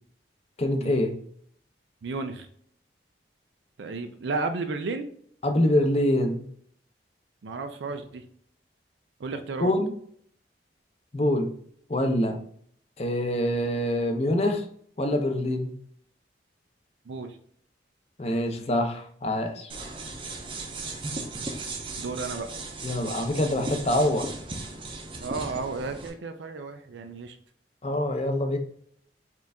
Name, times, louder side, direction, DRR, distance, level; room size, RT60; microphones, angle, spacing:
voice 1, 0.6-1.2 5.4-6.5 9.6-9.9 11.1-11.5 11.9-12.4 13.0-14.6 15.0-15.8 18.2-19.7 22.8-24.3 27.8-28.6, left 1 dB, 35° left, 4 dB, 0.6 m, -25 dB
voice 2, 2.0-2.5 3.8-5.1 7.4-8.2 9.2-9.7 17.1-17.4 22.0-22.5 25.2-27.4, right 3 dB, 75° right, 7 dB, 0.4 m, -33 dB
sound 1, 19.7-26.1, right 3 dB, 30° right, 0.5 m, -36 dB
4.5 x 2.5 x 3.4 m, 0.63 s
head